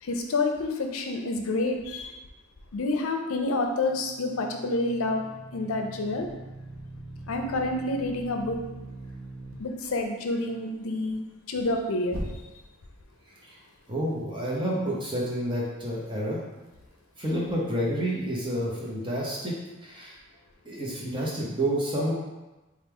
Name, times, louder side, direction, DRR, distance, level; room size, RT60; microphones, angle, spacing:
voice 1, 0.0-2.2 2.7-6.3 7.3-8.6 9.6-11.2 11.5-12.2, left 2 dB, 80° left, 4 dB, 0.5 m, -28 dB
sound 1, 3.7-9.5 12.1-12.8, right 1 dB, 75° right, 0.7 m, -41 dB
voice 2, 13.9-16.4 17.2-19.6 19.8-20.1 20.6-22.1, right 1 dB, 25° right, -4 dB, 0.8 m, -29 dB
4.4 x 2.4 x 3.5 m, 1.1 s
head